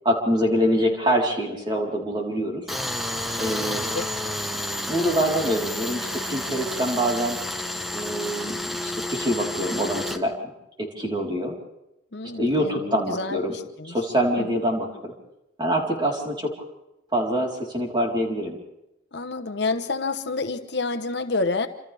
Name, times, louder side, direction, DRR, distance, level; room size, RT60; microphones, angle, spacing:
voice 1, 0.0-2.6 3.4-3.8 4.9-7.4 7.9-10.3 10.8-11.5 12.4-13.5 13.9-15.1 15.6-16.5 17.1-18.6, equal, 25° right, -1 dB, 4.0 m, -25 dB
Tools, 2.7-10.2, left 1 dB, ahead, 1.1 m, -30 dB
voice 2, 3.7-4.1 12.1-13.9 14.4-14.6 19.1-21.7, left 3 dB, 60° left, 8 dB, 1.1 m, -29 dB
28.0 x 27.0 x 3.5 m, 0.88 s
head